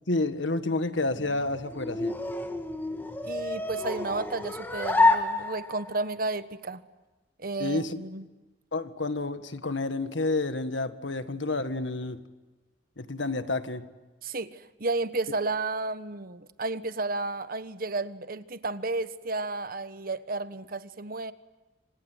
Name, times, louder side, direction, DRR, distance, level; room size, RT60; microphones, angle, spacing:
voice 1, 0.1-2.1 7.6-8.0 8.7-12.2 13.0-13.8, left 2 dB, 85° left, 10 dB, 1.7 m, -29 dB
sound 1, 1.0-6.0, left 2 dB, 10° left, 2.1 m, -28 dB
voice 2, 3.2-6.8 7.4-8.3 14.2-21.3, right 3 dB, 50° right, 12 dB, 1.3 m, -32 dB
27.5 x 26.5 x 8.0 m, 1.2 s
head